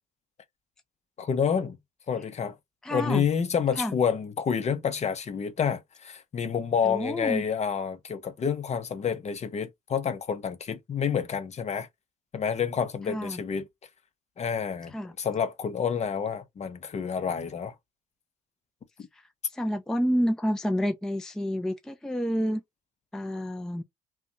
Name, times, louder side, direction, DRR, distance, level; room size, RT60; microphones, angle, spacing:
voice 1, 1.2-1.8 2.1-2.6 2.9-11.9 12.3-13.7 14.4-17.7, left 7 dB, 35° left, 0.7 m, -28 dB
voice 2, 2.8-3.3 3.8-3.9 6.8-7.4 13.1-13.4 14.9-15.1 19.1-19.2 19.5-22.6 23.1-23.8, equal, 5° left, 0.5 m, -29 dB
2.6 x 2.2 x 2.6 m
hypercardioid pair, 60°, 19 cm